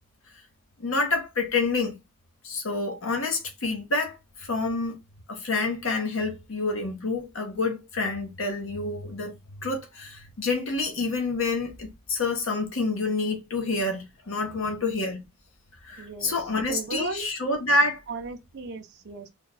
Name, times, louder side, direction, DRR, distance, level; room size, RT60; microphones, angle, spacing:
voice 1, 0.8-1.9 2.4-5.0 5.3-9.3 9.6-15.2 15.8-18.0, left 3 dB, 60° left, 0.9 m, -28 dB
voice 2, 16.0-16.3 16.7-17.3 18.1-19.3, right 4 dB, 50° right, 0.5 m, -36 dB
3.4 x 2.2 x 3.9 m
head